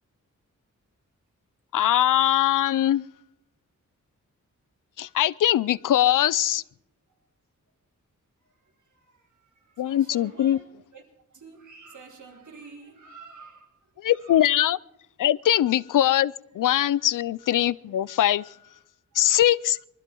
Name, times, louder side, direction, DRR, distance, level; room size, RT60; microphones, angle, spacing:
voice 1, 1.7-3.0 5.0-6.6 9.8-10.6 14.0-14.8 15.2-18.5 19.2-19.8, left 12 dB, 85° left, 0.5 m, -22 dB
voice 2, 8.8-10.6 10.9-11.0 11.3-14.5 17.0-17.2, right 4 dB, 70° right, 3.6 m, -49 dB
23.5 x 13.0 x 4.5 m
wide cardioid pair, 100°, 31 cm